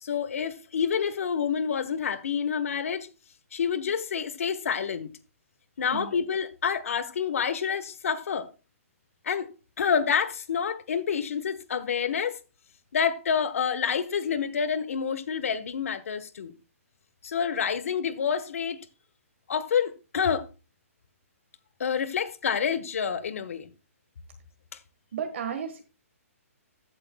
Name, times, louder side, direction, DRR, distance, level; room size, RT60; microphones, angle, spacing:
voice 1, 0.0-3.1 3.5-5.1 5.8-8.5 9.2-9.5 9.8-12.4 12.9-16.5 17.2-18.8 19.5-20.5 21.8-23.7, left 7 dB, 65° left, 1.2 m, -28 dB
voice 2, 25.1-25.8, right 7 dB, 55° right, 1.5 m, -33 dB
14.5 x 8.4 x 2.3 m
hypercardioid pair, 160°, 8 cm